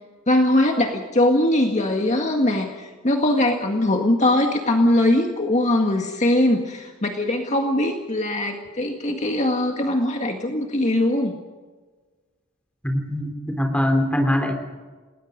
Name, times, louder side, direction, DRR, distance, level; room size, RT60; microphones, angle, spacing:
voice 1, 0.3-11.4, left 1 dB, 35° left, 3 dB, 1.9 m, -21 dB
voice 2, 12.8-14.6, left 1 dB, 5° left, 4 dB, 3.7 m, -22 dB
29.5 x 19.5 x 5.3 m, 1.4 s
head